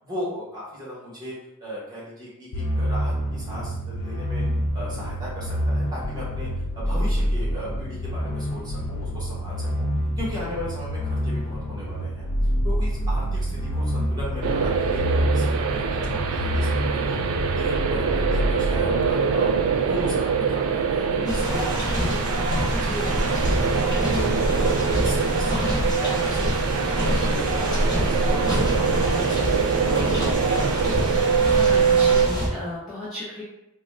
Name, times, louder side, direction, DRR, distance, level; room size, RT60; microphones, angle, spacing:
voice 1, 0.0-1.3 1.6-4.4 4.7-6.5 6.7-9.9 10.2-12.3 12.6-16.7 16.9-17.2 17.5-24.8 25.0-26.7 27.0-30.5, equal, 15° right, -7 dB, 1.2 m, -36 dB
sound 1, 2.5-19.0, equal, 70° left, 0.5 m, -27 dB
sound 2, 14.4-32.3, right 6 dB, 65° right, 0.3 m, -24 dB
sound 3, 21.3-32.5, equal, 15° left, 1.1 m, -26 dB
voice 2, 31.6-33.4, left 1 dB, ahead, -12 dB, 0.8 m, -34 dB
3.9 x 2.1 x 3.5 m, 0.89 s
head